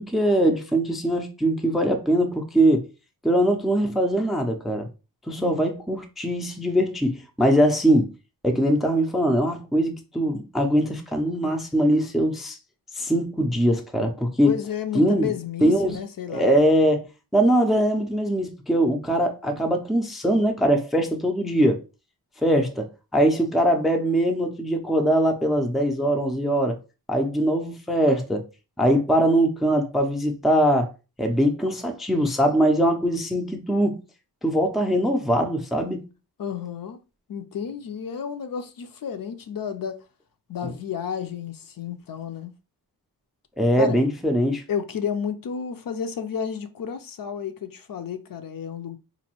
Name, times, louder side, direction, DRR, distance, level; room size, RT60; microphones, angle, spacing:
voice 1, 0.0-2.9 3.2-4.9 5.3-8.1 8.4-12.6 13.0-14.5 14.9-15.3 15.6-16.0 16.3-17.1 17.3-21.8 22.4-26.8 27.1-28.5 28.8-30.9 31.2-34.0 34.4-36.1 43.6-44.6, right 1 dB, ahead, 0.4 m, -22 dB
voice 2, 14.4-16.5 36.4-37.0 37.3-40.1 40.5-42.5 43.8-44.0 44.7-49.0, left 7 dB, 60° left, 0.5 m, -31 dB
4.0 x 2.6 x 2.8 m
wide cardioid pair, 180°, 39 cm